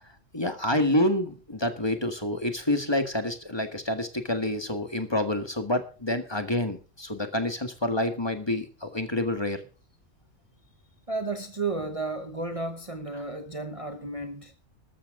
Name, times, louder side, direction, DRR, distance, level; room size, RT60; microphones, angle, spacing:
voice 1, 0.3-9.6, left 1 dB, 20° left, 1.8 m, -28 dB
voice 2, 11.1-14.5, right 3 dB, 30° right, 1.1 m, -33 dB
13.5 x 13.5 x 3.8 m
omnidirectional pair, 1.3 m